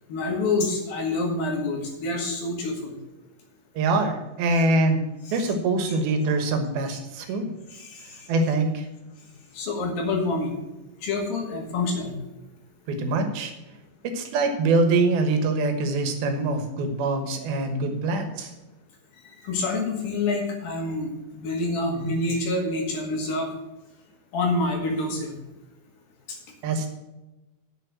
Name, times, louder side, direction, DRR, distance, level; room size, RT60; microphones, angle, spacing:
voice 1, 0.1-3.0 4.5-4.6 5.3-5.4 7.7-8.3 9.5-10.6 11.0-12.2 19.4-23.5 24.3-25.4 26.3-26.4, left 2 dB, 75° left, 1 dB, 3.7 m, -27 dB
voice 2, 3.8-5.0 5.3-7.5 8.3-8.9 12.9-13.5 14.0-18.5 26.6-26.9, right 2 dB, 90° right, 6 dB, 3.2 m, -24 dB
7.8 x 6.9 x 7.5 m, 1.0 s
omnidirectional pair, 4.2 m